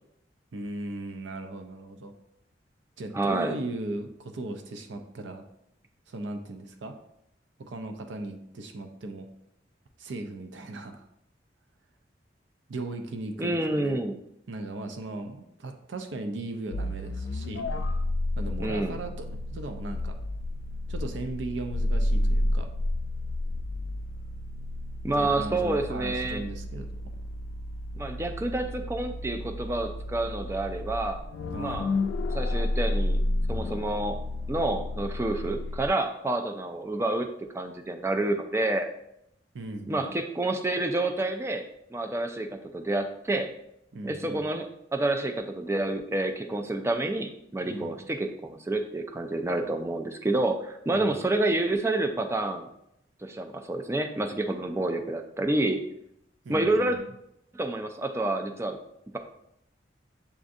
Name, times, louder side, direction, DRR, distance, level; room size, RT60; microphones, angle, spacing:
voice 1, 0.5-2.1 3.0-5.4 6.1-7.0 7.7-9.3 10.0-11.0 12.7-13.9 14.5-17.6 18.4-20.2 20.9-22.7 25.2-26.9 31.5-31.8 39.5-40.1 43.9-44.5 47.7-48.0 50.9-51.2 56.4-57.1, right 2 dB, 85° right, 6 dB, 0.5 m, -37 dB
voice 2, 3.1-3.5 13.4-14.1 18.6-19.0 25.0-26.4 27.9-31.2 31.6-31.9 32.3-33.2 33.5-34.2 34.5-37.3 37.5-38.9 39.9-42.5 42.7-43.5 44.0-52.7 53.2-55.8 56.5-57.0 57.5-58.8, right 2 dB, 15° right, 5 dB, 0.3 m, -28 dB
sound 1, 16.7-35.9, left 1 dB, 85° left, 0.3 m, -31 dB
6.9 x 2.5 x 2.5 m, 0.78 s
head